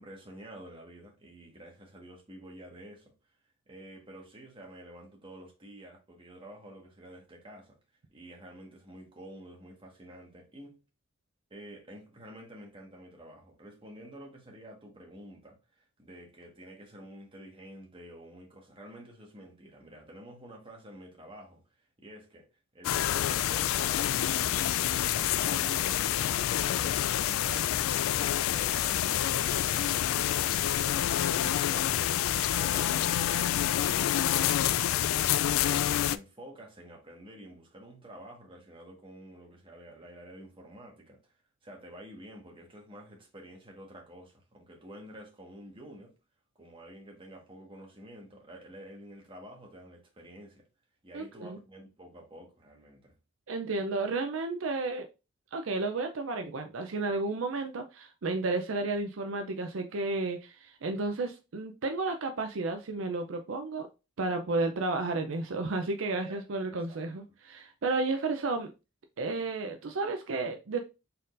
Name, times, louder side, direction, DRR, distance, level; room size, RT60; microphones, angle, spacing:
voice 1, 0.0-3.1 3.7-7.8 8.1-10.8 11.5-22.5 22.7-32.1 32.6-34.4 34.8-41.3 41.6-46.1 46.6-50.6 51.0-53.1 66.3-66.4 66.7-67.0, right 1 dB, 25° right, 1.5 m, -49 dB
sound 1, 22.8-36.2, left 11 dB, 85° left, 0.3 m, -27 dB
voice 2, 51.1-51.6 53.5-55.1 55.5-63.9 64.2-68.7 69.2-70.8, right 3 dB, 70° right, 0.5 m, -32 dB
4.3 x 3.8 x 2.5 m
head